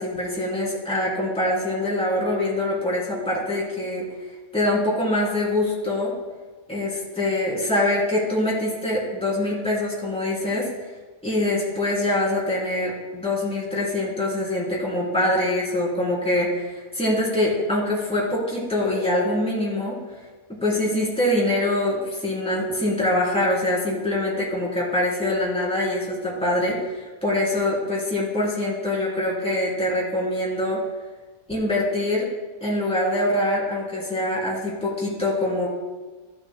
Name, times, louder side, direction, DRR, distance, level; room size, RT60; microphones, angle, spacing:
voice 1, 0.0-4.0 4.5-6.1 6.7-10.7 11.2-20.0 20.5-30.8 31.5-32.3 32.6-35.7, left 1 dB, 5° left, -6 dB, 3.1 m, -24 dB
14.0 x 11.5 x 2.2 m, 1.3 s
omnidirectional pair, 1.5 m